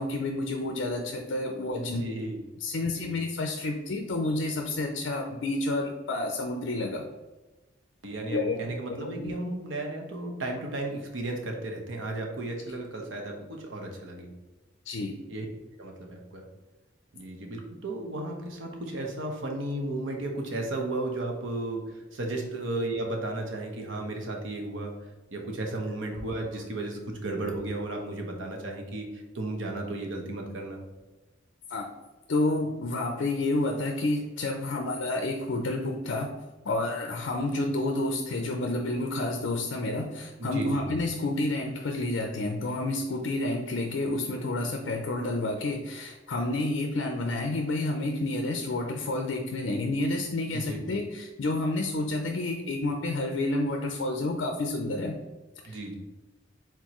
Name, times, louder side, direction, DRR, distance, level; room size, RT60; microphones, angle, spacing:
voice 1, 0.0-2.0 2.6-7.0 8.3-9.3 14.9-15.1 31.7-31.9 32.3-36.3 36.6-55.2 55.6-55.8, left 2 dB, 70° left, 3 dB, 0.5 m, -30 dB
voice 2, 1.7-2.4 2.8-3.1 8.0-14.3 15.3-15.4 15.8-16.4 17.1-21.8 22.1-24.9 25.3-29.1 29.3-30.8 40.4-40.8 50.5-50.8 55.6-55.9, right 2 dB, 90° right, 1 dB, 0.9 m, -34 dB
4.4 x 3.7 x 3.0 m, 1.2 s
head